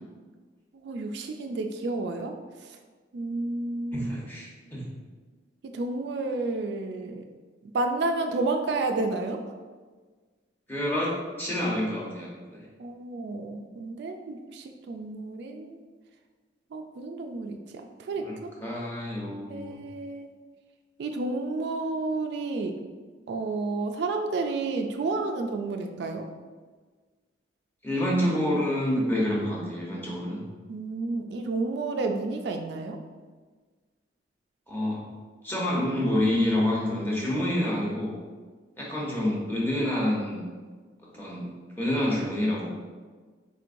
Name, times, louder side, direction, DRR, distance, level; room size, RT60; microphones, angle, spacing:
voice 1, 0.7-2.3 3.1-4.2 5.7-7.2 7.7-9.4 12.8-15.8 16.7-17.6 18.1-18.5 19.5-20.3 21.0-22.8 23.3-26.3 30.7-33.0, right 3 dB, 60° right, 4 dB, 0.3 m, -31 dB
voice 2, 3.9-4.8 10.7-12.6 18.2-19.8 27.8-30.4 34.7-35.0 35.4-38.1 38.8-40.4 41.0-42.7, left 1 dB, 10° left, -5 dB, 0.9 m, -28 dB
4.5 x 3.5 x 2.5 m, 1.4 s
head